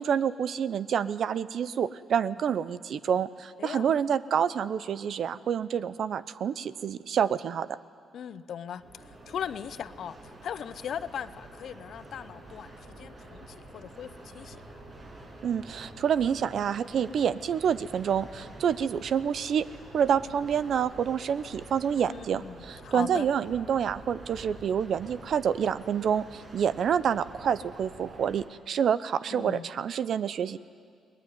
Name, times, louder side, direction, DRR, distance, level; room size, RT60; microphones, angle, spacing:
voice 1, 0.0-7.8 15.4-19.7 19.9-30.6, right 8 dB, 60° right, 16 dB, 0.7 m, -28 dB
voice 2, 3.6-3.9 8.1-14.6 22.1-22.6 22.8-23.3 29.3-29.7, left 8 dB, 65° left, 14 dB, 0.8 m, -39 dB
sound 1, 8.8-28.5, right 2 dB, 40° right, 7.0 m, -48 dB
22.0 x 19.5 x 9.6 m, 2.1 s
cardioid pair, 90°, 0 cm